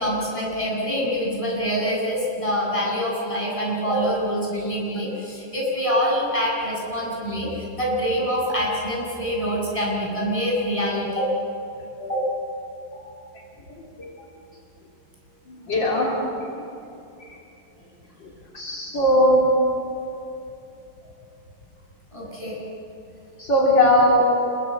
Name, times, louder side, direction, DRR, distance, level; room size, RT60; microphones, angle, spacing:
voice 1, 0.0-11.3 12.0-12.2 22.1-22.6, equal, 15° left, -4 dB, 7.8 m, -25 dB
voice 2, 15.7-16.1 18.5-19.4 23.4-24.3, left 1 dB, 65° left, -3 dB, 4.2 m, -18 dB
26.0 x 23.5 x 8.2 m, 2.8 s
omnidirectional pair, 2.2 m